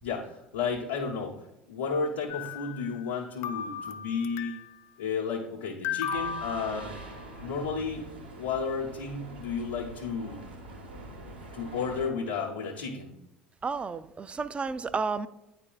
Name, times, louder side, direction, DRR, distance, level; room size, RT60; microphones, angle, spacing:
voice 1, 0.0-4.6 5.0-6.9 7.4-8.1 8.4-10.4 11.5-13.1, left 5 dB, 80° left, -7 dB, 0.9 m, -32 dB
sound 1, 2.3-3.2 3.4-4.8 5.8-7.4, left 7 dB, 50° left, 0.4 m, -36 dB
sound 2, 6.1-12.1, right 2 dB, 80° right, 1.0 m, -44 dB
voice 2, 13.6-15.3, right 4 dB, 20° right, 14 dB, 0.3 m, -31 dB
9.6 x 4.2 x 2.3 m, 0.95 s
figure-of-eight pair, 65°, 5 cm